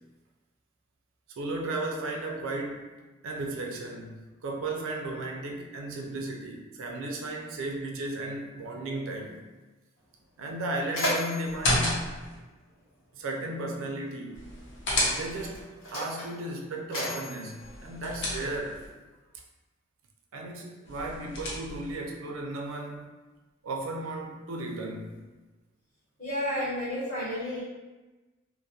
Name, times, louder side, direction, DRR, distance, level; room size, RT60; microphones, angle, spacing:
voice 1, 1.4-2.9 3.2-9.4 10.4-12.1 13.1-14.6 15.1-18.9 20.3-23.1 23.6-25.2, right 2 dB, 70° right, 1 dB, 0.4 m, -35 dB
Mechanisms, 10.0-10.1 10.4-13.2 14.2-14.3 15.1-18.7, equal, 75° left, 1.0 m, -36 dB
sound 1, 11.4-12.4 14.3-15.6 17.6-18.9 20.8-22.0, left 1 dB, 55° left, 0.6 m, -31 dB
voice 2, 26.2-27.6, left 1 dB, 35° left, -9 dB, 1.0 m, -31 dB
2.3 x 2.0 x 2.7 m, 1.2 s
head